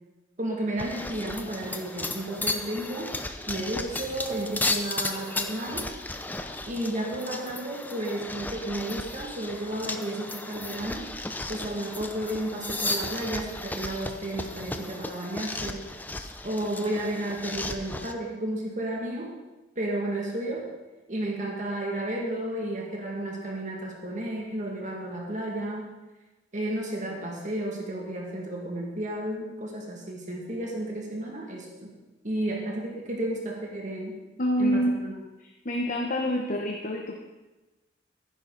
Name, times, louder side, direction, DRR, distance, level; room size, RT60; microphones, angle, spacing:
voice 1, 0.4-3.1 3.5-5.9 6.7-11.1 11.5-15.9 16.4-19.3 19.8-20.6 21.1-25.9 26.5-31.9 32.2-34.2 34.6-35.2, right 1 dB, 40° right, -1 dB, 2.3 m, -32 dB
sound 1, 0.8-18.1, left 2 dB, 10° left, 0.6 m, -34 dB
voice 2, 34.4-34.9 35.6-37.1, equal, 45° left, 1 dB, 1.1 m, -26 dB
15.0 x 10.5 x 4.1 m, 1.1 s
head